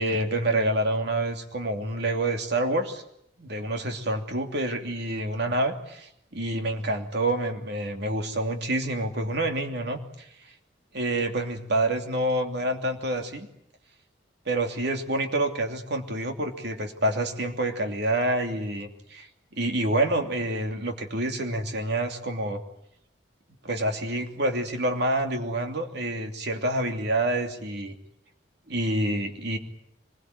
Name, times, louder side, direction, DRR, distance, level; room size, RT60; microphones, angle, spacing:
voice 1, 0.0-3.0 3.4-10.0 10.9-13.5 14.5-19.3 19.6-22.6 23.6-27.9 28.7-29.6, right 1 dB, 65° right, 4 dB, 2.9 m, -27 dB
25.0 x 22.0 x 9.3 m, 0.74 s
head